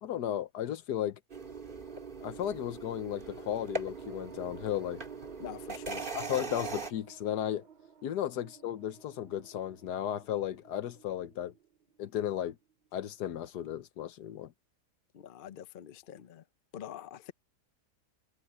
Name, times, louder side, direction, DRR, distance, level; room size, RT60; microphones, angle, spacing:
voice 1, 0.0-1.2 2.2-5.0 6.1-7.6 8.0-11.5 12.0-12.6 12.9-14.5, left 11 dB, 80° left, 1.4 m, -35 dB
sound 1, 1.3-6.9, right 3 dB, 30° right, 2.2 m, -40 dB
sound 2, 3.2-13.9, right 6 dB, 90° right, 2.9 m, -59 dB
voice 2, 5.4-6.1 15.1-16.4 16.7-17.3, left 10 dB, 55° left, 0.6 m, -45 dB
omnidirectional pair, 1.7 m